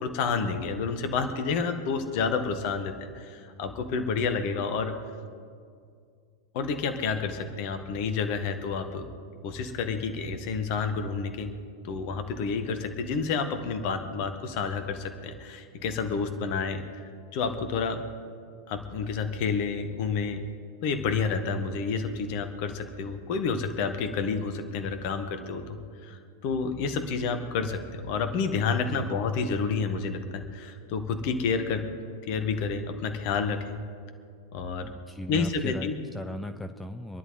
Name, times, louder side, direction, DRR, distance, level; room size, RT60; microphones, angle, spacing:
voice 1, 0.0-5.0 6.5-9.1 9.4-11.5 11.8-16.8 17.3-18.0 18.7-20.4 20.8-31.9 32.3-33.8 34.5-34.9 35.3-36.0, left 5 dB, 45° left, 8 dB, 1.5 m, -29 dB
voice 2, 34.8-37.2, left 1 dB, 5° left, 7 dB, 0.7 m, -37 dB
26.0 x 11.0 x 4.0 m, 2.2 s
figure-of-eight pair, 90°, 0 cm